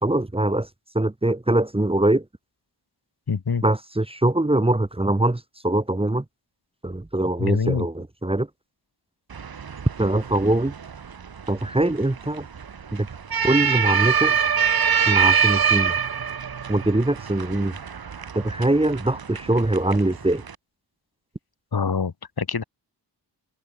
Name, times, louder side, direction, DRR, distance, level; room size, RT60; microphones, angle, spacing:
voice 1, 0.0-0.7 0.9-2.2 3.6-6.2 6.8-8.5 10.0-10.7 11.5-12.4 12.9-13.1 13.4-14.4 15.1-15.9 16.7-17.7 18.3-20.4, right 1 dB, 15° right, 1.6 m, -22 dB
voice 2, 3.3-3.6 7.4-7.9 21.7-22.6, left 5 dB, 60° left, 5.7 m, -25 dB
sound 1, 9.3-20.6, right 6 dB, 55° right, 1.8 m, -25 dB
open air
wide cardioid pair, 150°, 43 cm